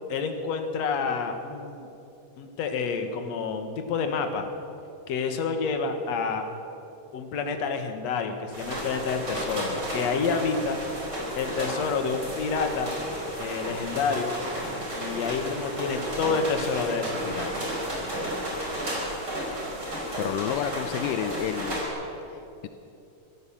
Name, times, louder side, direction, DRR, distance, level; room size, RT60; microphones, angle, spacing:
voice 1, 0.1-1.9 2.4-4.5 5.1-6.4 7.1-10.8 11.4-12.9 13.4-14.3 15.0-17.5, left 5 dB, 55° left, 6 dB, 2.5 m, -28 dB
sound 1, 8.5-21.9, equal, 30° right, 5.5 m, -33 dB
voice 2, 20.2-21.9 22.3-22.7, left 10 dB, 80° left, 9 dB, 2.2 m, -30 dB
24.5 x 15.0 x 7.3 m, 2.8 s
omnidirectional pair, 3.9 m